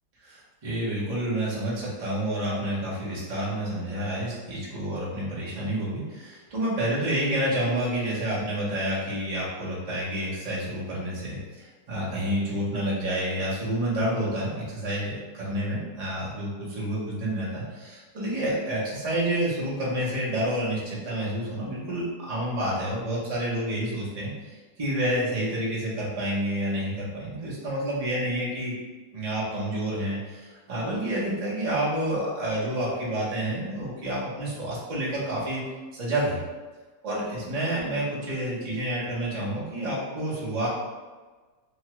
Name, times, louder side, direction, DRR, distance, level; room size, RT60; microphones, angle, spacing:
voice 1, 0.2-28.7 29.1-35.6 35.9-36.4 37.0-40.7, right 1 dB, 35° right, -7 dB, 0.5 m, -29 dB
3.0 x 2.2 x 2.9 m, 1.3 s
omnidirectional pair, 1.8 m